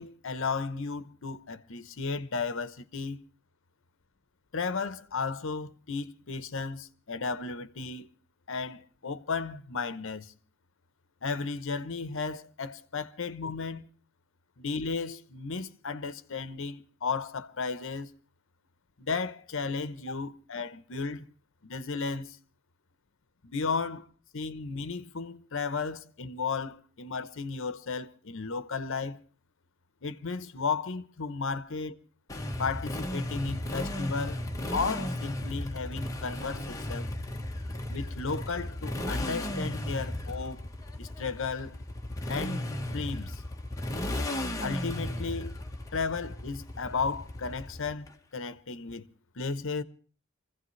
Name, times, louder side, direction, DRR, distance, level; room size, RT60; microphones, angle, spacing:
voice 1, 0.0-3.2 4.5-8.1 8.5-10.3 11.2-13.9 14.6-18.1 19.0-21.3 21.6-22.4 23.4-24.1 24.3-29.2 30.0-32.0 32.6-34.4 34.7-37.1 37.9-40.7 41.0-41.7 42.3-42.6 42.9-43.4 44.6-45.6 45.9-48.1 48.3-49.1 49.4-49.8, left 4 dB, 65° left, 0.9 m, -34 dB
Motorcycle, 32.3-48.1, left 1 dB, 15° left, 1.3 m, -35 dB
25.0 x 15.5 x 3.2 m
head